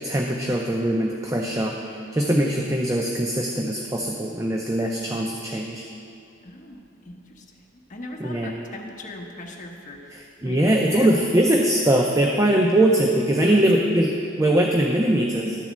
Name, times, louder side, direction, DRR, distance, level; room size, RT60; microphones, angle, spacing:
voice 1, 0.0-1.8 2.1-5.8 8.2-8.5 10.1-14.1 14.4-15.6, right 1 dB, 15° right, 0 dB, 0.5 m, -21 dB
voice 2, 6.4-7.4 7.9-10.2 10.4-11.4 13.4-13.6, left 1 dB, 40° left, 1 dB, 0.9 m, -39 dB
11.5 x 4.1 x 7.3 m, 2.5 s
head